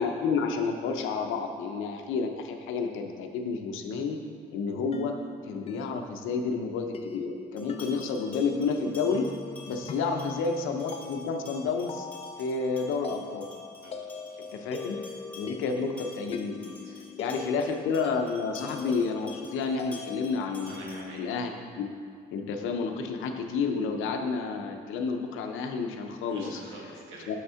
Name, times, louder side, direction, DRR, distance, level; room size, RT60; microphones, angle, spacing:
voice 1, 0.0-4.2 4.5-9.3 9.7-12.1 12.4-13.5 14.5-15.0 15.3-16.7 17.2-21.5 21.8-21.9 22.3-26.6 27.3-27.4, left 4 dB, 85° left, 5 dB, 0.6 m, -30 dB
sound 1, 4.7-20.5, left 5 dB, 30° left, 0.4 m, -42 dB
sound 2, 7.6-21.2, left 3 dB, 5° left, 1.3 m, -50 dB
voice 2, 13.8-14.4 16.8-16.9 17.2-17.3 20.6-21.2 26.3-27.3, right 2 dB, 80° right, -3 dB, 1.4 m, -47 dB
6.5 x 3.5 x 5.6 m, 2.4 s
cardioid pair, 90°, 20 cm